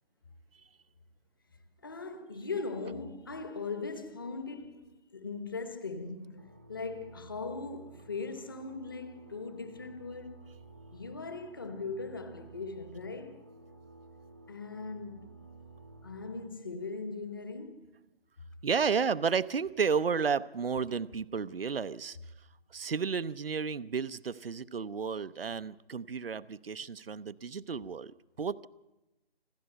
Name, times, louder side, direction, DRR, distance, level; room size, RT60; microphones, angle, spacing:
voice 1, 1.8-10.4 10.9-13.4 14.5-15.3 16.0-17.9, left 4 dB, 20° left, 1.1 m, -39 dB
sound 1, 6.4-16.5, right 2 dB, 20° right, 0.7 m, -53 dB
voice 2, 18.6-22.2 22.7-28.7, right 6 dB, 65° right, 0.7 m, -32 dB
27.0 x 13.0 x 7.9 m
figure-of-eight pair, 165°, 31 cm